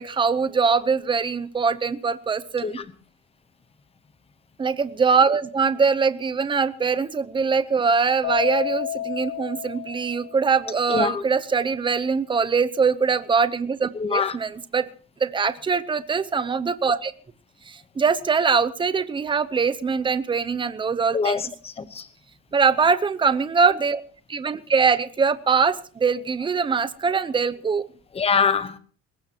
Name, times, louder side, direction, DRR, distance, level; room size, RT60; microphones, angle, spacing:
voice 1, 0.0-2.8 4.6-14.9 15.2-17.1 17.7-21.4 22.5-24.0 24.3-27.8, right 5 dB, 15° right, 0.7 m, -22 dB
Keyboard (musical), 8.2-10.7, left 12 dB, 55° left, 1.6 m, -30 dB
voice 2, 10.9-11.2 13.9-14.4 21.1-22.1 28.1-28.8, left 5 dB, 15° left, 0.9 m, -24 dB
21.5 x 18.5 x 2.9 m
cardioid pair, 175°, 34 cm